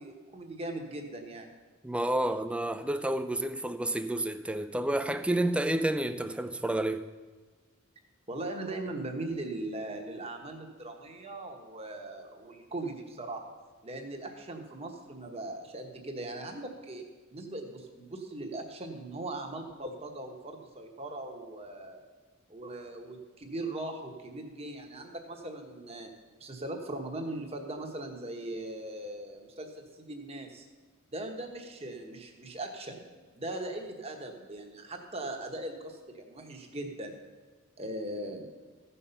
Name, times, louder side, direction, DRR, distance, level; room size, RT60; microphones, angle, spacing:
voice 1, 0.0-1.5 8.3-13.4 13.8-17.0 17.3-22.0 22.5-26.1 26.4-30.7 31.1-33.0 33.3-37.2 37.8-38.5, right 2 dB, 30° right, 1.2 m, -39 dB
voice 2, 1.8-7.0, right 1 dB, 5° right, 0.3 m, -30 dB
15.0 x 5.6 x 5.6 m
head